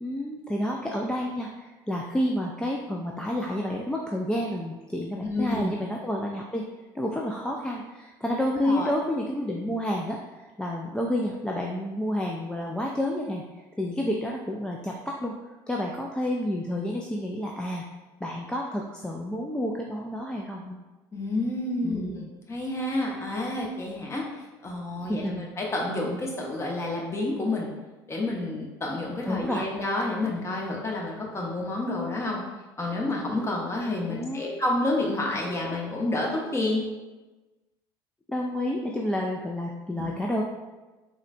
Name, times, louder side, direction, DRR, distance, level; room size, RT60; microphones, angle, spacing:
voice 1, 0.0-6.7 6.9-13.4 13.8-15.4 15.7-17.8 18.2-20.8 21.8-22.3 25.1-25.5 29.3-29.7 34.1-34.6 38.3-40.4, left 1 dB, 5° left, -2 dB, 0.3 m, -30 dB
voice 2, 5.2-5.7 8.5-8.9 21.1-24.3 24.6-25.3 25.6-27.7 28.1-32.4 32.8-36.8 40.0-40.1, left 2 dB, 25° left, -2 dB, 0.8 m, -29 dB
3.7 x 2.2 x 2.6 m, 1.2 s
hypercardioid pair, 75°, 11 cm